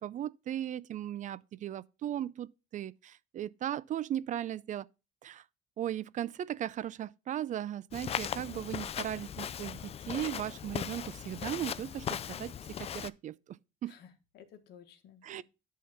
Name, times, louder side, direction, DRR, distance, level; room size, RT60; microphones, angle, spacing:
voice 1, 0.0-4.9 5.2-5.4 5.8-12.5 12.8-13.4 13.8-13.9 15.2-15.4, right 11 dB, 50° right, 0.4 m, -37 dB
Walk footsteps, 7.9-13.1, left 9 dB, 35° left, 0.4 m, -38 dB
voice 2, 8.4-8.7 13.8-15.4, left 9 dB, 80° left, 1.4 m, -55 dB
10.5 x 3.9 x 5.5 m
cardioid pair, 110°, 17 cm